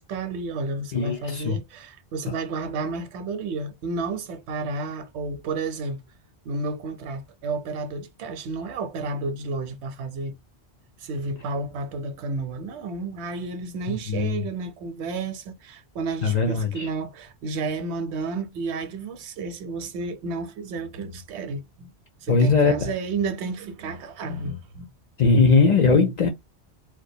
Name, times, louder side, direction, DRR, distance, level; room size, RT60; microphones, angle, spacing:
voice 1, 0.0-6.0 6.5-10.4 11.0-21.9 22.2-24.9, right 3 dB, 85° right, 0.9 m, -31 dB
voice 2, 0.9-1.6 13.9-14.4 16.2-16.9 22.3-22.8 25.2-26.3, left 4 dB, 55° left, 0.5 m, -20 dB
2.3 x 2.1 x 2.6 m
omnidirectional pair, 1.1 m